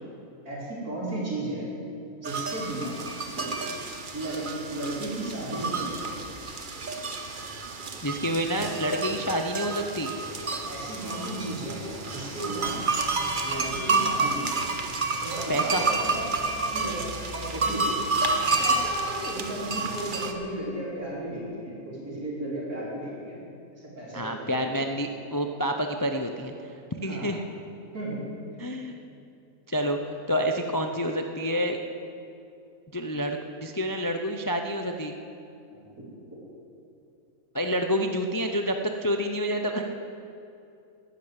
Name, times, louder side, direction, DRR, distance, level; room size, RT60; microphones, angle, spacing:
voice 1, 0.4-1.7 2.2-3.0 3.4-3.6 4.1-6.0 6.4-6.5 10.7-11.8 12.1-12.8 13.4-14.6 15.2-17.0 17.3-17.9 18.4-23.4 23.8-24.8 27.0-27.3 27.9-28.2 35.7-36.4, right 1 dB, 75° right, -6 dB, 4.8 m, -35 dB
sound 1, 2.2-20.3, right 3 dB, 35° right, 1.0 m, -30 dB
voice 2, 8.0-10.1 15.5-15.9 24.1-26.5 27.0-27.4 28.6-29.0 29.7-31.8 32.9-35.2 37.5-39.9, equal, 25° left, 4 dB, 0.4 m, -28 dB
13.0 x 10.5 x 8.9 m, 2.7 s
omnidirectional pair, 1.6 m